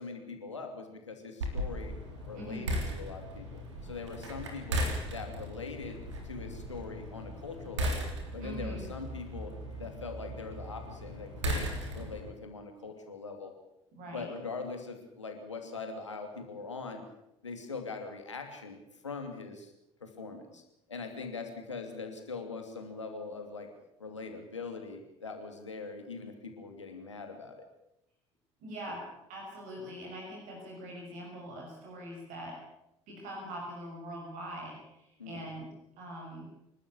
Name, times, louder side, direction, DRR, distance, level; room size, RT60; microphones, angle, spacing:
voice 1, 0.0-1.9 2.3-6.0 6.2-9.5 9.8-13.5 14.1-17.0 17.4-19.7 20.0-20.6 20.9-23.7 24.0-27.7 35.2-35.5, left 4 dB, 85° left, 5 dB, 2.8 m, -42 dB
sound 1, 1.4-12.3, equal, 80° right, 3.5 m, -37 dB
voice 2, 2.3-2.8 8.4-8.8 13.9-14.3 28.6-32.6 33.1-36.5, equal, 60° right, 0 dB, 6.6 m, -43 dB
27.5 x 12.5 x 8.4 m, 0.86 s
figure-of-eight pair, 55°, 15 cm